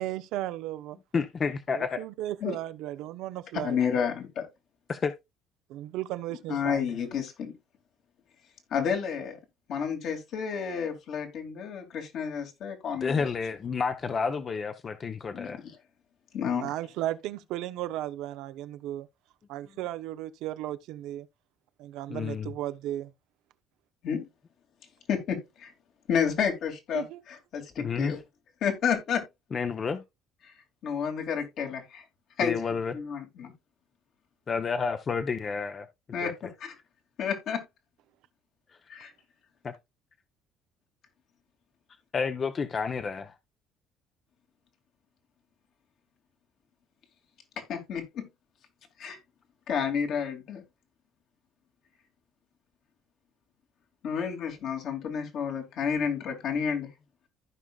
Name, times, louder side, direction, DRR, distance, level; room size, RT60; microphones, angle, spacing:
voice 1, 0.0-1.0 1.7-3.8 5.7-6.9 16.5-19.1 19.5-21.3 21.8-23.1 26.9-27.2, right 14 dB, 80° right, 0.7 m, -35 dB
voice 2, 1.1-2.0 4.9-5.1 13.0-15.6 22.1-22.5 27.8-28.1 29.5-30.0 32.4-32.9 34.5-35.9 36.2-36.3 39.6-39.7 42.1-43.3, left 5 dB, 35° left, 0.8 m, -30 dB
voice 3, 3.6-4.5 6.5-7.5 8.7-9.4 9.7-13.3 15.3-15.6 16.3-16.7 24.0-24.2 25.1-25.7 26.1-28.2 28.6-29.2 30.8-32.0 32.4-32.6 32.9-33.5 36.1-36.7 37.2-37.6 38.9-39.1 47.7-48.3 49.0-49.2 49.7-50.6 54.0-56.9, left 7 dB, 65° left, 2.5 m, -30 dB
15.0 x 5.0 x 2.3 m
cardioid pair, 100°, 0 cm